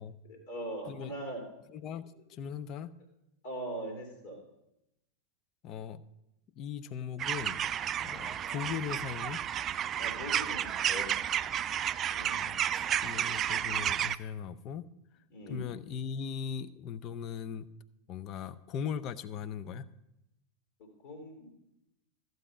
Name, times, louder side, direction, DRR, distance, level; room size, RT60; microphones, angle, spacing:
voice 1, 0.2-1.4 3.4-4.4 10.0-11.4 12.1-12.4 15.3-15.7 20.8-21.5, right 1 dB, 50° left, 1 dB, 2.9 m, -41 dB
voice 2, 1.7-2.9 5.6-6.0 6.6-7.6 8.0-9.4 12.3-14.9 15.5-17.7 18.1-19.9, left 7 dB, 35° left, 15 dB, 0.6 m, -39 dB
sound 1, 7.2-14.1, right 10 dB, 30° right, 0.4 m, -32 dB
14.5 x 7.9 x 5.0 m, 0.86 s
figure-of-eight pair, 90°, 0 cm